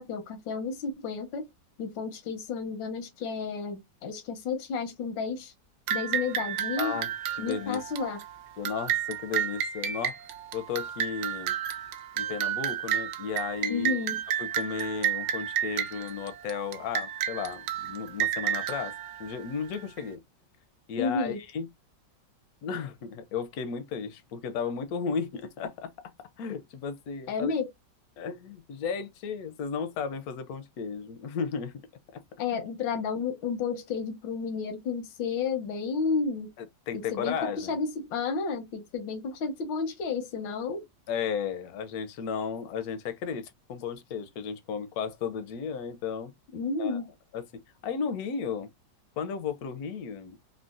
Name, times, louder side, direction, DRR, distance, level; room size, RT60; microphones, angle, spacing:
voice 1, 0.0-1.5 1.8-5.5 5.9-7.0 7.4-8.2 13.7-14.2 21.0-21.4 27.3-27.7 32.4-36.5 36.9-40.8 46.5-47.1, left 5 dB, 90° left, 1.5 m, -31 dB
sound 1, 5.9-20.0, right 10 dB, 70° right, 1.0 m, -32 dB
voice 2, 6.8-7.1 7.4-7.8 8.6-10.2 10.5-11.6 12.2-14.0 14.4-18.9 19.2-20.2 20.9-21.7 22.6-25.9 26.4-27.5 28.2-31.7 32.1-32.2 36.6-37.8 41.1-46.3 46.8-47.0 47.3-48.7 49.2-50.4, left 6 dB, 70° left, 0.9 m, -34 dB
3.7 x 2.0 x 2.4 m
omnidirectional pair, 2.0 m